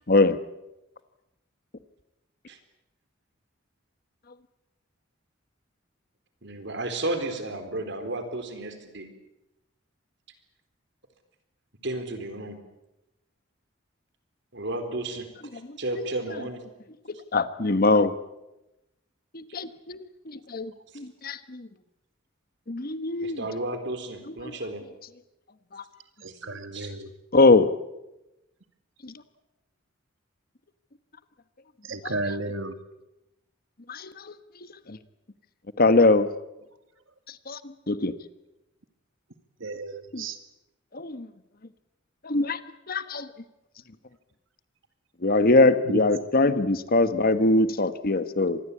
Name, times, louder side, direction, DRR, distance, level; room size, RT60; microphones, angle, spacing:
voice 1, 0.1-0.4 15.7-16.1 17.3-18.1 19.3-21.7 22.7-23.4 25.7-25.8 27.3-27.7 29.0-29.1 32.0-32.1 33.9-34.3 34.9-35.0 35.8-36.3 37.5-37.6 37.9-38.1 40.1-40.2 40.9-41.3 42.2-42.6 42.9-43.3 45.2-48.6, left 2 dB, 50° left, 12 dB, 1.2 m, -22 dB
voice 2, 6.4-9.1 11.8-12.6 14.5-15.3 15.5-16.6 23.2-24.8 26.3-26.4 26.7-26.9, right 2 dB, 65° right, 8 dB, 4.0 m, -33 dB
voice 3, 26.2-27.1 31.9-32.7 39.6-40.4, right 2 dB, 80° right, 9 dB, 2.0 m, -33 dB
25.5 x 20.0 x 8.5 m, 0.94 s
head